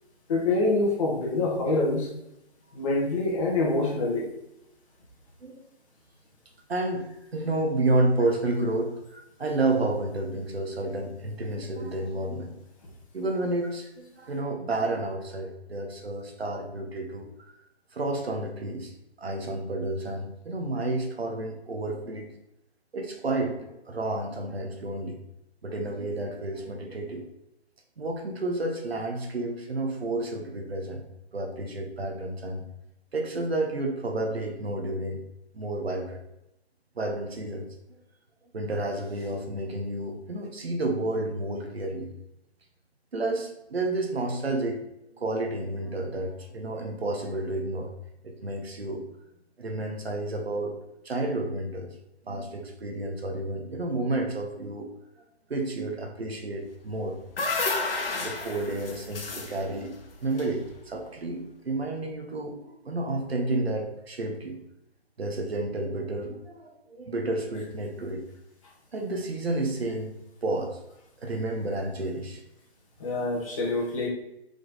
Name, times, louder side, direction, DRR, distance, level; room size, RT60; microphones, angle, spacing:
voice 1, 0.3-2.1 2.7-4.3 73.0-74.1, left 2 dB, 30° left, -3 dB, 1.7 m, -25 dB
voice 2, 6.7-7.1 7.3-12.6 13.1-17.3 17.9-18.9 19.2-22.3 22.9-25.2 25.6-27.2 28.0-31.0 31.3-32.6 33.1-35.2 35.5-36.2 37.0-37.7 38.5-42.1 43.1-44.8 45.2-47.9 48.2-49.0 49.6-50.7 51.0-51.9 52.3-54.9 55.5-57.2 58.2-64.6 65.2-68.3 68.9-70.1 70.4-70.7 71.2-72.4, right 2 dB, 65° right, 2 dB, 1.5 m, -30 dB
sound 1, 56.9-61.1, left 3 dB, 60° left, 1.1 m, -32 dB
5.0 x 4.5 x 4.1 m, 0.85 s
figure-of-eight pair, 140°, 33 cm